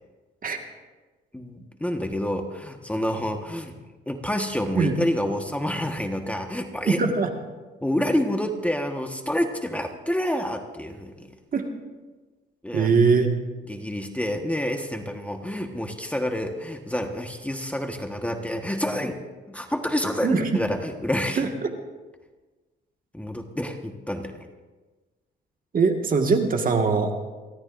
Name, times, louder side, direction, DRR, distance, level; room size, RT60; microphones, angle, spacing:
voice 1, 1.3-3.7 4.1-7.0 7.8-11.3 12.6-12.9 13.7-19.2 19.5-21.5 23.1-24.3, left 1 dB, 5° left, 4 dB, 1.4 m, -28 dB
voice 2, 6.9-7.3 11.5-11.7 12.7-13.3 20.2-20.5 21.4-21.7 25.7-27.2, right 4 dB, 45° right, 4 dB, 1.8 m, -21 dB
29.5 x 13.0 x 2.6 m, 1.3 s
cardioid pair, 90°, 20 cm